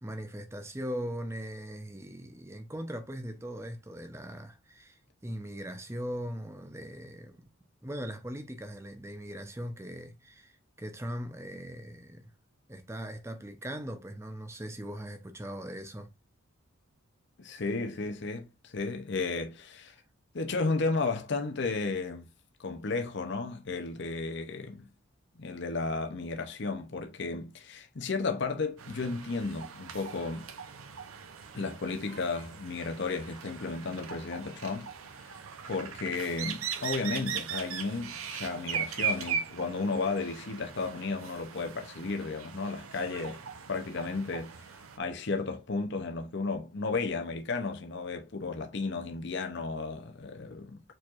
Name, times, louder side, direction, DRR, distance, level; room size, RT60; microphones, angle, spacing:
voice 1, 0.0-7.4 7.8-12.3 12.7-16.1, equal, 15° right, 0.6 m, -40 dB
voice 2, 17.4-19.9 20.3-22.3 22.6-24.9 25.4-30.5 31.5-34.9 35.7-43.4 43.7-44.6 45.0-50.8, left 3 dB, 55° left, 0.7 m, -33 dB
sound 1, 28.8-45.0, right 7 dB, 80° right, 0.7 m, -39 dB
4.6 x 4.4 x 2.5 m
head